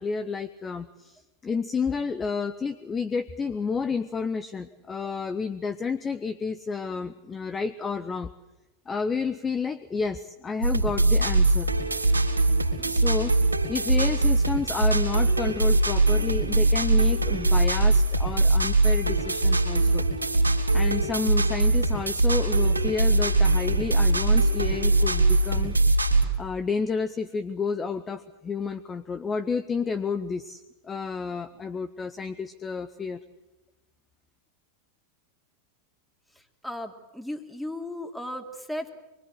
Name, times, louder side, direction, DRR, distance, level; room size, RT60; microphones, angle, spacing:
voice 1, 0.0-8.3 8.9-11.7 12.9-20.0 20.7-25.8 26.4-33.2, left 5 dB, 20° left, 13 dB, 0.9 m, -30 dB
bubbs the squirrel loop, 10.6-26.2, right 2 dB, 80° right, 3.8 m, -22 dB
voice 2, 36.6-38.9, left 1 dB, ahead, 5 dB, 2.8 m, -35 dB
25.0 x 24.0 x 8.0 m, 1.0 s
figure-of-eight pair, 90°, 0 cm